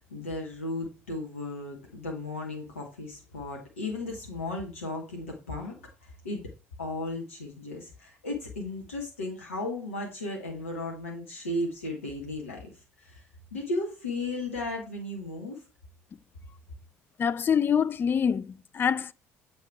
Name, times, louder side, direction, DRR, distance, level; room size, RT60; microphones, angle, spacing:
voice 1, 0.0-6.5 6.8-15.6, left 2 dB, 80° left, 1.0 m, -35 dB
voice 2, 17.2-19.1, left 7 dB, 30° left, 0.3 m, -25 dB
7.4 x 3.0 x 4.6 m
figure-of-eight pair, 55°, 7 cm